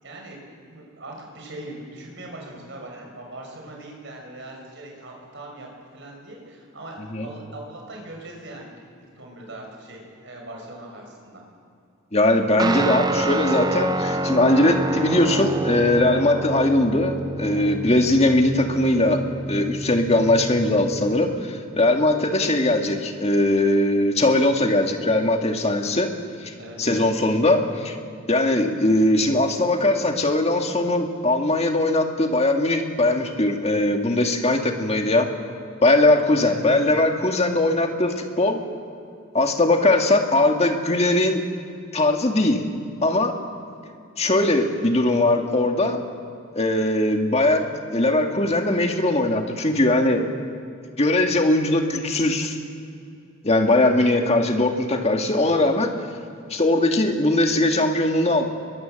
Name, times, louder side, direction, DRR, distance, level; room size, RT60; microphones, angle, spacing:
voice 1, 0.0-5.7 5.9-8.7 9.2-11.4 26.6-27.0 36.4-36.9 55.2-55.6, right 1 dB, 60° right, 0 dB, 6.0 m, -40 dB
voice 2, 12.1-26.1 26.4-26.5 26.8-27.9 28.3-35.3 35.8-38.6 39.3-41.4 41.9-42.6 43.0-43.4 44.2-46.0 46.6-50.3 51.0-52.6 53.4-55.9 56.5-58.5, left 1 dB, 30° left, 4 dB, 1.8 m, -20 dB
Guitar, 12.6-21.4, right 2 dB, 20° right, 0.6 m, -28 dB
25.0 x 22.0 x 7.7 m, 2.5 s
head